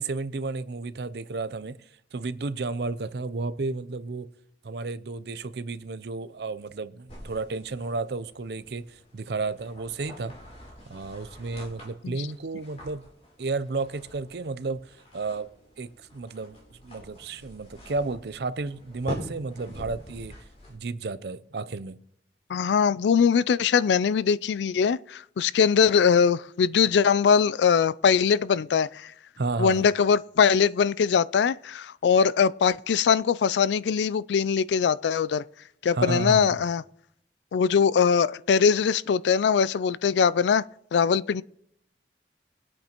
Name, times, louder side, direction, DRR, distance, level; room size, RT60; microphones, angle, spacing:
voice 1, 0.0-1.8 2.1-4.3 4.6-10.3 10.9-13.0 13.4-15.5 15.8-20.3 20.7-22.0 29.4-29.9 35.9-36.5, right 3 dB, 65° right, 0.5 m, -32 dB
sound 1, 7.1-20.8, equal, 35° left, 3.4 m, -45 dB
voice 2, 22.5-29.1 29.6-35.4 35.8-36.8 37.5-40.6 40.9-41.4, left 6 dB, 80° left, 0.3 m, -22 dB
23.0 x 8.7 x 3.0 m
head